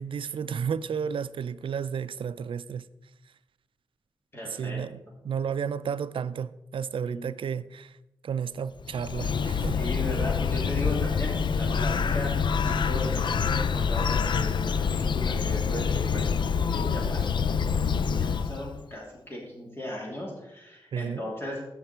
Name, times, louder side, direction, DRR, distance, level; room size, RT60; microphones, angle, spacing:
voice 1, 0.0-2.8 4.4-7.9 8.2-9.8 20.9-21.2, right 7 dB, 80° right, 15 dB, 0.4 m, -32 dB
voice 2, 4.3-4.8 7.0-7.3 9.7-17.4 17.7-21.6, left 1 dB, 25° left, -3 dB, 3.2 m, -37 dB
Bird, 8.8-18.8, left 6 dB, 60° left, 0.4 m, -26 dB
15.5 x 6.0 x 4.5 m, 0.92 s
wide cardioid pair, 170°, 9 cm